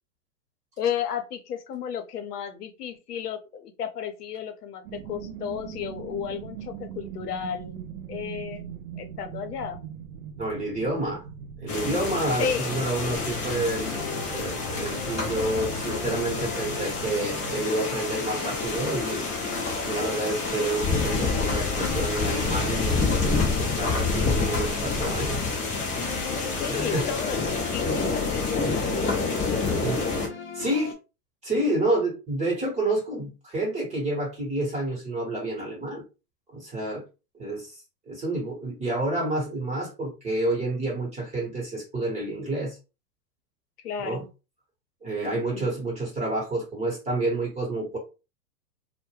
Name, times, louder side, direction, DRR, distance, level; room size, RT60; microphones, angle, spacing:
voice 1, 0.8-9.8 12.4-12.7 26.6-28.9 43.8-44.3 45.3-45.7, left 8 dB, 80° left, 8 dB, 0.8 m, -33 dB
sound 1, 4.8-17.6, right 7 dB, 50° right, 0.5 m, -41 dB
voice 2, 10.4-11.2 11.6-25.4 26.7-27.0 29.4-30.9 31.4-36.0 36.5-37.0 37.3-37.7 38.1-42.8 44.0-44.2 45.0-48.0, right 2 dB, 15° right, -2 dB, 0.9 m, -29 dB
sound 2, 11.7-30.3, left 4 dB, 15° left, 0.5 m, -28 dB
sound 3, 12.0-30.9, left 6 dB, 45° left, 0.8 m, -38 dB
2.2 x 2.1 x 3.0 m, 0.29 s
hypercardioid pair, 130°, 46 cm